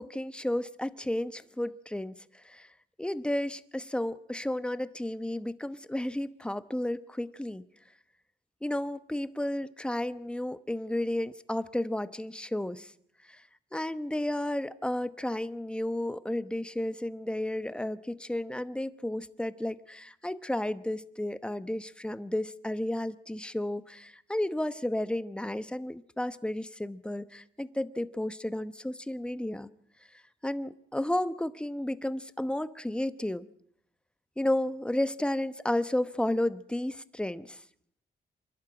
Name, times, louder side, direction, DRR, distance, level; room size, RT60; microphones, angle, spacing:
voice 1, 0.0-2.7 3.0-7.6 8.6-12.9 13.2-13.4 13.7-29.7 30.4-33.5 34.4-37.6, left 1 dB, 5° left, 0.9 m, -32 dB
27.0 x 11.5 x 8.7 m
cardioid pair, 90°, 18 cm